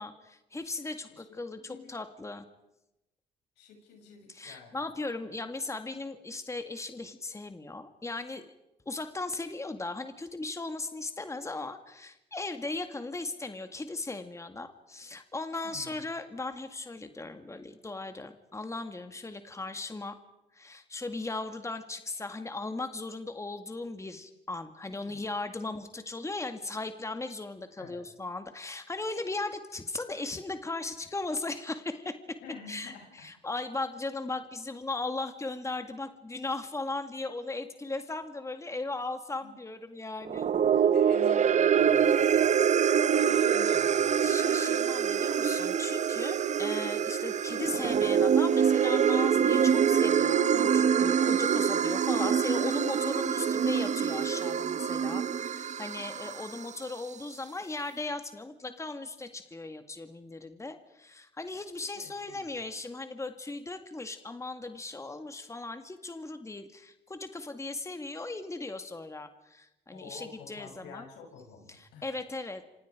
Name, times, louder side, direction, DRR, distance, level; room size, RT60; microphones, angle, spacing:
voice 1, 0.0-2.4 4.3-8.5 8.9-20.2 20.5-32.4 32.7-40.5 40.7-40.9 43.1-43.3 44.2-71.0 71.7-72.6, left 3 dB, 15° left, 8 dB, 2.0 m, -37 dB
voice 2, 1.5-1.9 3.6-4.9 5.2-5.3 15.6-16.0 25.0-25.2 27.8-28.0 32.4-33.3 39.4-39.5 40.7-42.7 43.1-44.3 53.4-53.7 62.0-62.5 69.9-72.1, left 5 dB, 85° left, 2 dB, 7.5 m, -48 dB
sound 1, 40.2-56.7, right 8 dB, 45° right, 0.9 m, -25 dB
27.5 x 26.5 x 5.0 m, 0.92 s
supercardioid pair, 75°, 17 cm